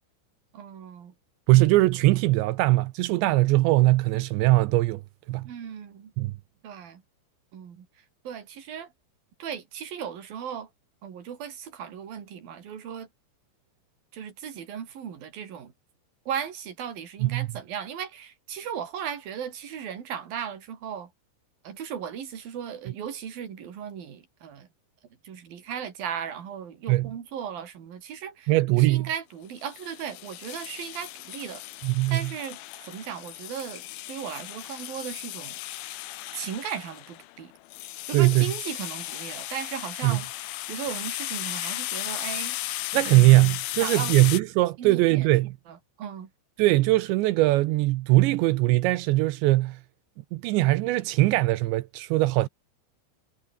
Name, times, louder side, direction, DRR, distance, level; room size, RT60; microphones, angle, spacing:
voice 1, 0.5-1.1 1.5-1.7 5.4-6.1 6.6-7.0 7.5-7.9 8.2-8.9 9.4-10.7 11.0-13.1 14.1-15.7 16.3-21.1 21.6-24.7 25.2-31.6 32.1-35.6 36.3-37.5 38.1-40.3 40.7-42.6 43.1-43.4 43.8-44.1 44.8-45.3 45.7-46.3, right 8 dB, 50° right, 4.5 m, -36 dB
voice 2, 1.5-5.0 5.3-5.5 6.2-6.3 17.2-17.5 26.9-27.1 28.5-29.1 31.8-32.3 38.1-38.5 40.0-40.2 42.9-45.6 46.6-49.8 50.3-52.5, right 18 dB, 80° right, 2.7 m, -21 dB
sound 1, 29.6-44.4, left 16 dB, 75° left, 3.5 m, -36 dB
omnidirectional pair, 5.8 m